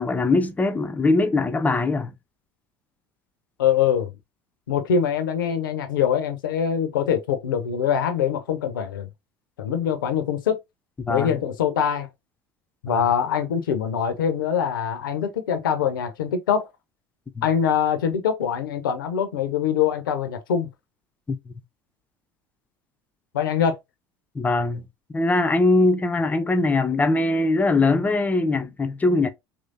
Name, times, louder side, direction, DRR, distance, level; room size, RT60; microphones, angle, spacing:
voice 1, 0.0-2.1 11.0-11.4 12.9-13.0 17.4-17.5 21.3-21.5 24.3-29.3, left 2 dB, 15° left, 0.4 m, -22 dB
voice 2, 3.6-4.1 4.7-9.1 9.6-10.6 11.1-12.1 12.8-16.7 17.4-20.7 23.3-23.8, left 8 dB, 70° left, 0.6 m, -23 dB
3.0 x 2.7 x 2.5 m
figure-of-eight pair, 65°, 12 cm